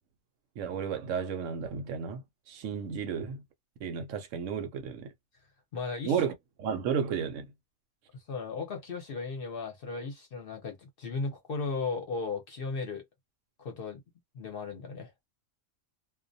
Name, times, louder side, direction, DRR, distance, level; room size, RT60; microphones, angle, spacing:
voice 1, 0.6-3.4 3.8-5.1 6.0-6.3 6.6-7.5, right 7 dB, 75° right, 0.9 m, -33 dB
voice 2, 5.7-6.2 8.1-13.0 13.6-14.0 14.3-15.1, left 4 dB, 55° left, 0.7 m, -36 dB
2.3 x 2.1 x 2.6 m
omnidirectional pair, 1.4 m